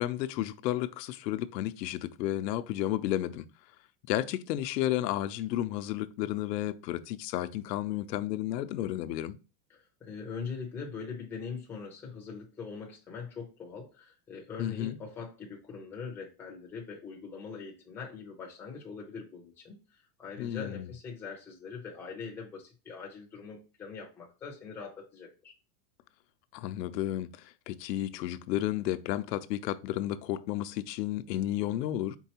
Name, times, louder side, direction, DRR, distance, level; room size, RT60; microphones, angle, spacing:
voice 1, 0.0-3.4 4.1-9.4 14.6-15.0 20.4-20.9 26.5-32.2, left 13 dB, 90° left, 0.6 m, -32 dB
voice 2, 9.7-19.8 20.2-25.5, left 5 dB, 5° left, 0.5 m, -42 dB
4.5 x 3.7 x 2.8 m
supercardioid pair, 165°, 48 cm